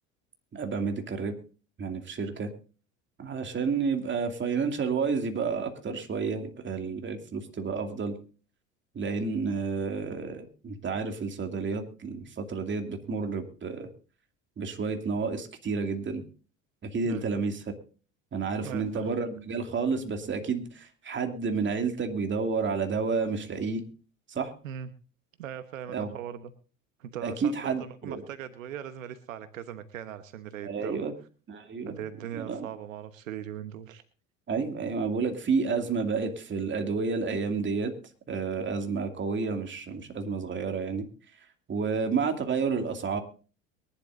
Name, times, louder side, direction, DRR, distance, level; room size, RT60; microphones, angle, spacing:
voice 1, 0.5-1.3 1.8-2.5 3.2-8.1 8.9-13.9 14.6-16.2 16.8-17.6 18.3-23.8 24.3-24.5 25.9-26.1 27.2-28.2 30.7-31.1 31.5-32.0 32.3-32.7 34.5-37.9 38.3-41.1 41.7-43.2, right 5 dB, 30° right, 5 dB, 2.5 m, -30 dB
voice 2, 18.6-19.2 24.6-24.9 25.4-26.5 27.0-31.0 31.9-34.0, right 9 dB, 80° right, 11 dB, 1.2 m, -40 dB
23.0 x 11.5 x 2.6 m, 0.37 s
hypercardioid pair, 75°, 39 cm